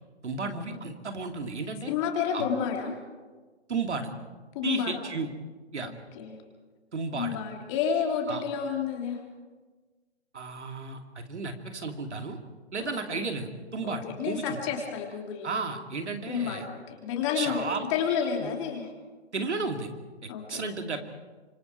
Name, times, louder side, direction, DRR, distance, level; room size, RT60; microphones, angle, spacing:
voice 1, 0.2-1.9 2.3-2.5 3.7-4.1 4.6-5.3 5.7-5.9 6.9-7.4 8.3-8.4 10.3-12.4 12.7-14.6 15.4-16.7 17.3-17.9 18.4-18.5 19.3-19.9 20.2-21.0, right 4 dB, 90° right, 4 dB, 2.9 m, -33 dB
voice 2, 1.9-3.0 4.5-5.0 5.8-6.3 7.1-9.2 12.8-13.2 13.8-15.5 16.3-18.9 20.3-20.7, left 7 dB, 25° left, 1 dB, 3.1 m, -30 dB
26.0 x 25.0 x 4.6 m, 1.4 s
hypercardioid pair, 155°, 33 cm